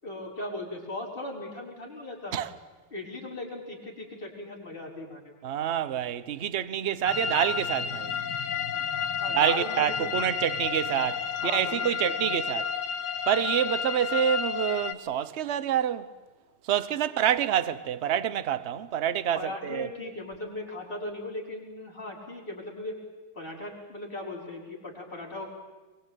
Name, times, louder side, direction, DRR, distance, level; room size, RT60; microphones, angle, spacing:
voice 1, 0.0-2.4 2.9-5.4 9.2-10.1 11.4-12.4 19.3-23.0 23.3-25.5, left 2 dB, 25° left, 5.7 m, -38 dB
voice 2, 5.4-8.1 9.3-12.7 13.3-16.1 16.6-19.9, right 10 dB, 45° right, 0.9 m, -27 dB
sound 1, 7.1-14.9, left 7 dB, 75° left, 1.9 m, -31 dB
23.5 x 23.0 x 9.1 m
omnidirectional pair, 2.3 m